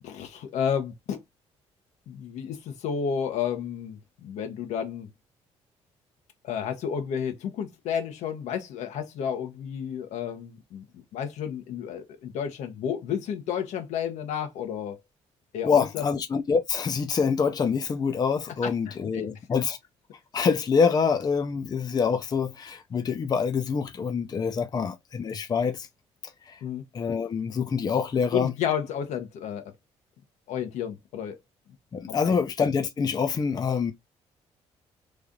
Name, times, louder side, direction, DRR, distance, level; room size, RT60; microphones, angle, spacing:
voice 1, 0.0-1.2 2.1-5.1 6.4-15.0 15.5-16.1 18.6-19.3 24.7-24.8 26.6-26.8 28.3-29.6 30.5-31.4 32.0-32.4, left 8 dB, 80° left, 1.1 m, -31 dB
voice 2, 15.6-19.8 20.3-25.9 26.5-26.6 26.9-28.5 31.9-33.9, left 6 dB, 35° left, 0.6 m, -26 dB
3.2 x 2.6 x 3.6 m
cardioid pair, 110°, 12 cm